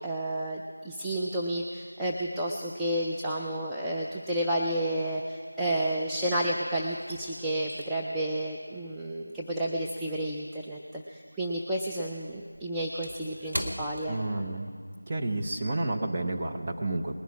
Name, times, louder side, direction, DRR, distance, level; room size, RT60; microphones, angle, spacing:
voice 1, 0.0-14.2, right 1 dB, 5° right, -6 dB, 0.4 m, -31 dB
sound 1, 4.0-4.1 4.3-6.3 6.6-11.3 11.6-14.9 15.2-15.4 15.9-16.1, equal, 85° right, 1.5 m, -42 dB
voice 2, 14.1-14.7 15.1-17.2, right 2 dB, 20° right, 0 dB, 0.8 m, -30 dB
20.0 x 11.0 x 4.7 m, 2.1 s
figure-of-eight pair, 170°, 0 cm